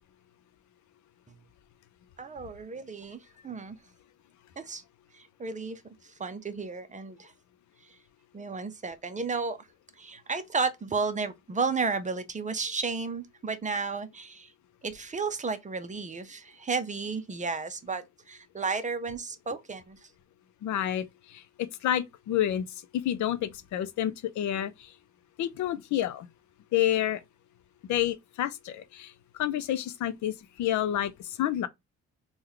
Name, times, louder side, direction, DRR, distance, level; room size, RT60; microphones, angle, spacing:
voice 1, 2.2-3.2 3.4-3.8 4.6-4.8 5.1-5.8 6.2-7.3 8.3-9.6 10.0-14.5 14.8-20.0, right 4 dB, 25° right, 0.6 m, -33 dB
voice 2, 20.6-21.1 21.6-22.6 23.0-24.7 25.4-26.3 26.7-27.2 27.9-29.1 29.4-31.1 31.4-31.7, left 11 dB, 70° left, 0.5 m, -28 dB
3.6 x 2.3 x 3.1 m
cardioid pair, 90°, 30 cm